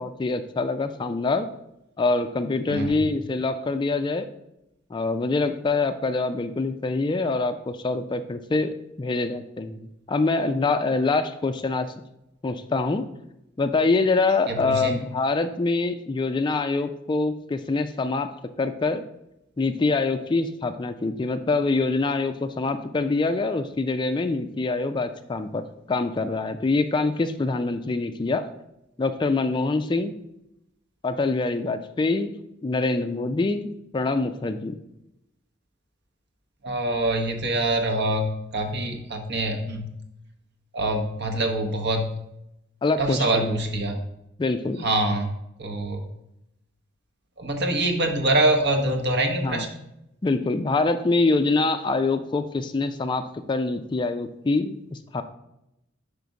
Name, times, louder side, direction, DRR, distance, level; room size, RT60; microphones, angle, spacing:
voice 1, 0.0-1.5 2.0-4.3 4.9-11.9 12.4-13.0 13.6-18.3 18.6-19.0 19.6-25.6 25.9-28.5 29.0-30.1 31.0-32.3 32.6-34.8 42.8-43.6 44.4-44.9 49.4-49.7 50.2-55.2, left 3 dB, 25° left, 10 dB, 0.3 m, -25 dB
voice 2, 14.5-15.0 36.6-39.9 40.7-42.1 43.0-44.0 44.8-45.3 45.6-46.0 47.4-49.9, right 1 dB, 60° right, 5 dB, 1.0 m, -25 dB
5.3 x 5.0 x 4.7 m, 0.85 s
head